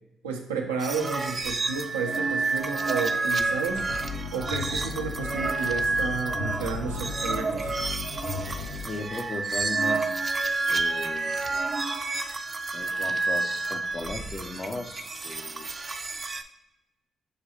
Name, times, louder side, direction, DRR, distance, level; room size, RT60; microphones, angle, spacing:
voice 1, 0.2-3.9 4.3-7.7, right 5 dB, 90° right, 2 dB, 0.5 m, -32 dB
sound 1, 0.8-16.4, right 3 dB, 40° right, 0.5 m, -29 dB
sound 2, 3.8-8.8, left 5 dB, 80° left, 1.1 m, -35 dB
voice 2, 8.8-10.2 10.7-11.7 12.7-15.8, left 2 dB, 45° left, 4 dB, 0.5 m, -37 dB
6.4 x 2.3 x 2.9 m, 0.92 s
hypercardioid pair, 40°, 0 cm